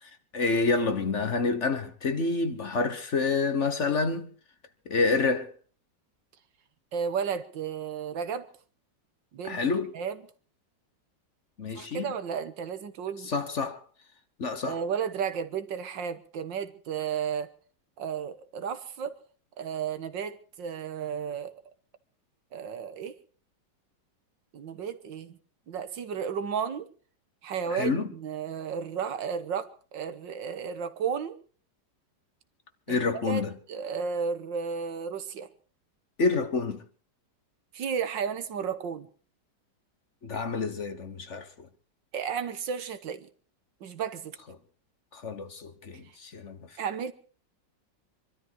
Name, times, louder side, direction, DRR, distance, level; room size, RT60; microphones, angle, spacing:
voice 1, 0.0-4.3 4.9-5.5 9.4-9.9 11.6-12.1 13.2-13.8 14.4-14.8 27.7-28.1 32.9-33.6 36.2-36.8 40.2-41.7 45.1-46.8, left 4 dB, 45° left, 1.4 m, -28 dB
voice 2, 6.9-8.5 9.3-9.6 9.9-10.2 11.7-13.3 14.7-17.5 18.0-19.2 19.6-21.5 22.5-23.2 24.5-25.4 25.7-26.9 27.4-31.4 32.9-35.5 37.7-39.1 42.1-43.3 43.8-44.4 46.8-47.1, right 7 dB, 90° right, 2.0 m, -33 dB
24.5 x 13.0 x 4.6 m
omnidirectional pair, 2.0 m